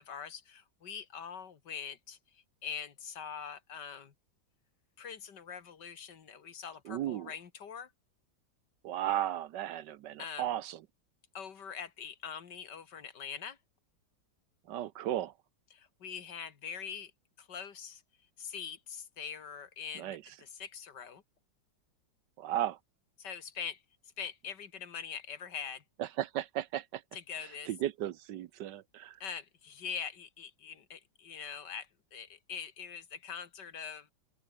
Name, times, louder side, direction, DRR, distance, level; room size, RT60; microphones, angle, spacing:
voice 1, 0.0-4.1 5.0-7.9 10.2-10.5 11.3-13.6 15.7-17.1 17.4-18.0 18.4-21.2 23.2-23.8 24.2-25.8 27.1-27.7 29.2-34.1, left 7 dB, 65° left, 2.2 m, -43 dB
voice 2, 6.9-7.3 8.8-10.8 14.7-15.3 20.0-20.2 22.4-22.8 26.0-27.0 27.7-29.2, right 12 dB, 70° right, 1.3 m, -35 dB
open air
omnidirectional pair, 2.1 m